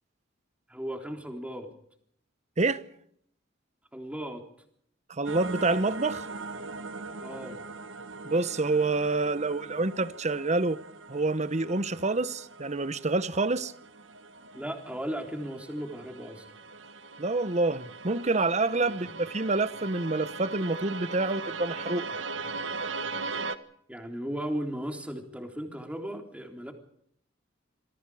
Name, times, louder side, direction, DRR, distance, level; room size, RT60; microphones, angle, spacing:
voice 1, 0.7-1.7 3.9-4.4 7.2-7.6 14.5-16.5 18.8-19.1 23.9-26.7, equal, 5° right, 3.7 m, -36 dB
voice 2, 5.1-6.2 8.2-10.8 11.1-13.7 17.2-22.1, right 3 dB, 35° right, 1.0 m, -27 dB
sound 1, 5.3-23.6, right 3 dB, 85° right, 1.5 m, -40 dB
27.5 x 23.0 x 4.9 m
head